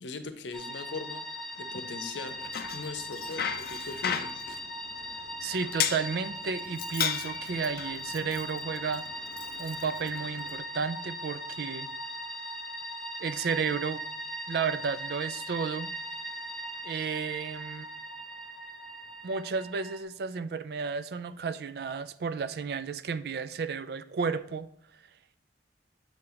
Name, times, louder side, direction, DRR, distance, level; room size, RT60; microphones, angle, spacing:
voice 1, 0.0-1.2 1.6-2.4 2.7-4.4, left 4 dB, 85° left, 9 dB, 0.7 m, -39 dB
sound 1, 0.5-20.0, equal, 5° left, 0.6 m, -39 dB
Bicycle, 2.3-10.6, left 9 dB, 55° left, 0.4 m, -36 dB
voice 2, 5.4-9.0 9.6-11.9 13.2-14.0 14.5-15.9 16.8-17.9 19.2-24.7, right 5 dB, 60° right, 14 dB, 0.3 m, -32 dB
7.5 x 4.3 x 3.9 m, 0.67 s
head